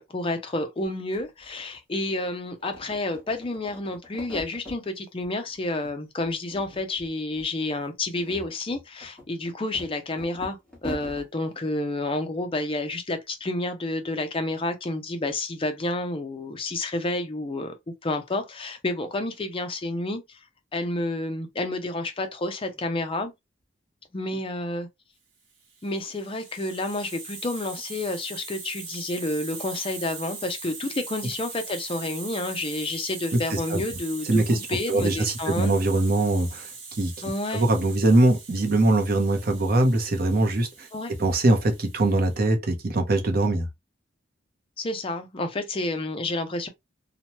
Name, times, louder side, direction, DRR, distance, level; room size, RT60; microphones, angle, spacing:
voice 1, 0.0-17.7 18.0-20.4 20.7-23.3 24.1-24.9 25.8-35.8 37.2-37.7 40.9-41.1 44.8-46.7, left 2 dB, 30° left, 0.5 m, -30 dB
sound 1, 0.8-0.9 1.1-2.3 2.6-4.8 5.2-6.0 6.2-7.1 7.3-7.5 8.0-11.3, left 1 dB, 5° left, 1.2 m, -42 dB
Hiss, 25.7-42.4, right 4 dB, 70° right, 1.1 m, -41 dB
voice 2, 33.5-33.8 34.3-34.6 34.9-37.1 37.5-40.9 41.2-43.7, right 2 dB, 55° right, 0.7 m, -22 dB
2.9 x 2.1 x 2.9 m
head